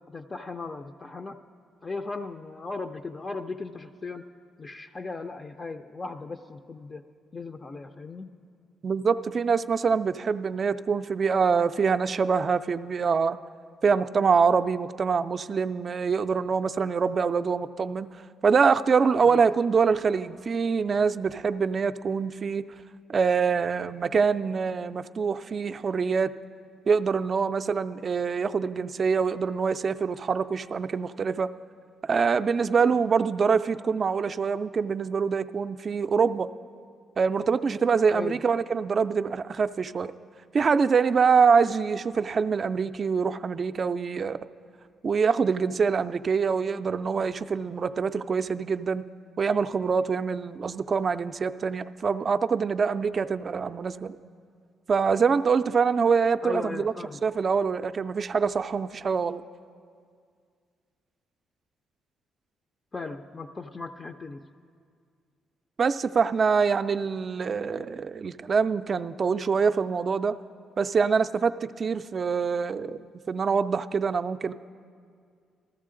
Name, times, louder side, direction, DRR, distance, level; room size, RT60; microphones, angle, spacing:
voice 1, 0.0-1.4 1.8-4.3 4.6-7.0 7.3-8.3 19.3-19.4 38.1-38.4 56.4-57.2 62.9-64.4, left 3 dB, 30° left, 5 dB, 0.4 m, -37 dB
voice 2, 8.8-13.4 13.8-18.1 18.4-22.7 23.1-26.3 26.9-31.5 32.0-36.5 37.2-40.1 40.5-44.4 45.0-49.0 49.4-54.2 54.9-56.9 57.2-59.4 65.8-70.4 70.8-73.0 73.3-74.5, right 5 dB, 45° right, 12 dB, 0.3 m, -25 dB
13.5 x 13.5 x 3.8 m, 2.2 s
cardioid pair, 90°, 0 cm